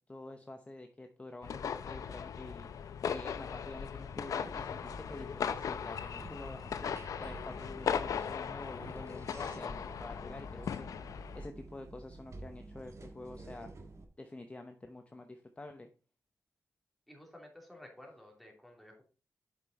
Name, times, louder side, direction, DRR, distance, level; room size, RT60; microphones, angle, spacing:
voice 1, 0.1-2.7 3.0-6.9 7.2-13.7 14.2-15.9, left 2 dB, 20° left, 6 dB, 0.8 m, -48 dB
sound 1, 1.4-11.5, left 7 dB, 85° left, 0.6 m, -38 dB
sound 2, 4.1-14.0, right 2 dB, 60° right, 1.5 m, -50 dB
voice 2, 17.1-19.0, left 1 dB, ahead, 0 dB, 2.8 m, -53 dB
8.1 x 5.3 x 4.1 m, 0.36 s
cardioid pair, 80°, 6 cm